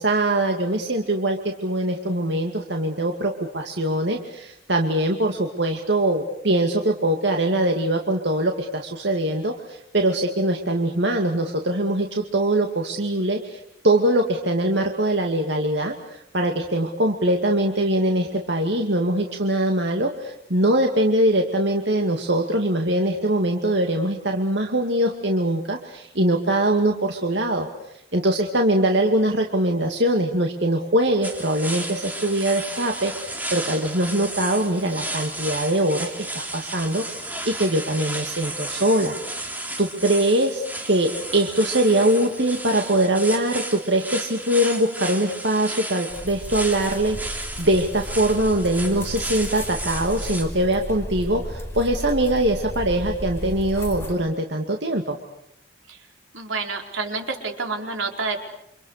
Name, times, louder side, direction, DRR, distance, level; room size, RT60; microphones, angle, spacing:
voice 1, 0.0-27.7 28.1-39.1 39.4-39.5 39.8-55.2, right 1 dB, 65° right, 3 dB, 2.4 m, -22 dB
sound 1, 31.2-50.4, right 1 dB, 10° right, 3.5 m, -33 dB
sound 2, 46.1-54.1, equal, 15° left, 4.7 m, -34 dB
voice 2, 56.3-58.4, right 4 dB, 90° right, 3 dB, 4.9 m, -28 dB
29.0 x 26.5 x 6.7 m, 0.77 s
head